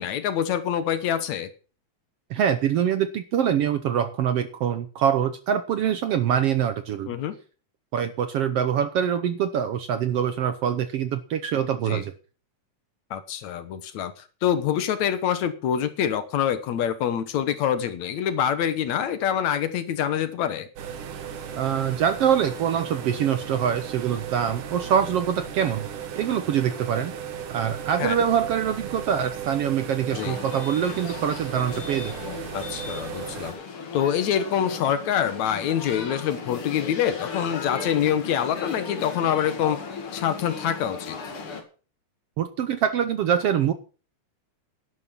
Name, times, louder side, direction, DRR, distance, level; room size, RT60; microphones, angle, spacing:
voice 1, 0.0-1.5 7.1-7.3 11.9-12.0 13.1-20.7 28.0-28.2 30.1-30.4 32.5-33.6 33.9-39.8 40.1-41.2, left 9 dB, 70° left, 11 dB, 2.4 m, -25 dB
voice 2, 2.3-7.1 7.9-12.1 21.6-25.9 26.1-27.1 27.5-32.1 42.4-43.7, right 9 dB, 65° right, 10 dB, 1.6 m, -24 dB
sound 1, 20.8-33.5, right 8 dB, 90° right, 3.2 m, -36 dB
sound 2, 30.1-41.6, left 5 dB, 45° left, 2.9 m, -36 dB
11.5 x 11.0 x 5.8 m, 0.37 s
omnidirectional pair, 3.5 m